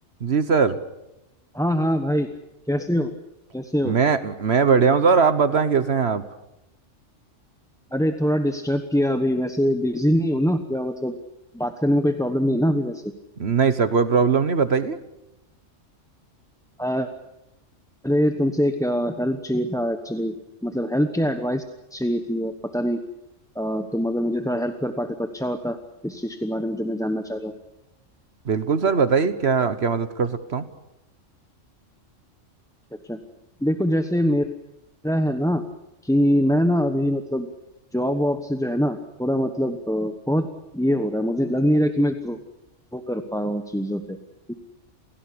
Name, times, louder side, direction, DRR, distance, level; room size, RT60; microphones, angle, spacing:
voice 1, 0.2-0.8 3.8-6.2 13.4-15.0 28.4-30.7, right 5 dB, 60° right, 12 dB, 1.4 m, -20 dB
voice 2, 1.5-2.3 2.7-3.1 3.5-4.0 7.9-11.1 11.5-13.1 16.8-17.1 18.0-20.4 20.6-21.6 21.9-23.0 23.5-25.8 26.0-27.5 33.1-33.2 33.6-34.5 35.0-35.6 36.0-37.5 37.9-40.5 40.7-42.4 42.9-44.2 44.5-44.6, equal, 5° left, 7 dB, 1.1 m, -23 dB
28.5 x 17.0 x 8.6 m, 0.91 s
omnidirectional pair, 1.3 m